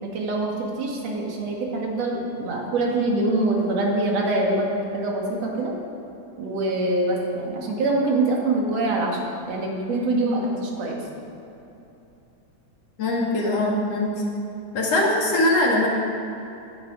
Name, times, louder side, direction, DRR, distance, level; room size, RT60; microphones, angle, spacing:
voice 1, 0.0-4.7 4.9-5.7 6.4-9.2 9.5-11.0, right 2 dB, 60° right, -1 dB, 3.3 m, -24 dB
voice 2, 13.0-14.1 14.7-15.9, left 1 dB, 55° left, -2 dB, 3.3 m, -21 dB
18.0 x 11.0 x 6.2 m, 2.9 s
omnidirectional pair, 3.4 m